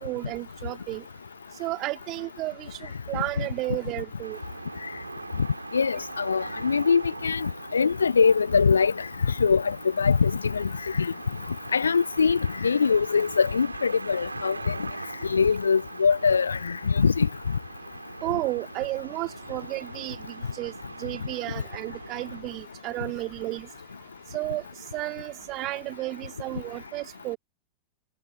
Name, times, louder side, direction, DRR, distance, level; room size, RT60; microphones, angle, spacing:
voice 1, 0.0-1.0 1.6-4.4 18.2-20.7 21.0-23.7 24.3-24.6 24.9-27.4, right 19 dB, 40° right, 2.9 m, -33 dB
sound 1, 4.2-22.4, right 3 dB, 80° right, 6.1 m, -41 dB
voice 2, 5.7-8.9 9.4-10.7 11.0-11.1 11.7-14.7 15.3-17.3, left 5 dB, 75° left, 0.5 m, -22 dB
figure-of-eight pair, 90°, 0 cm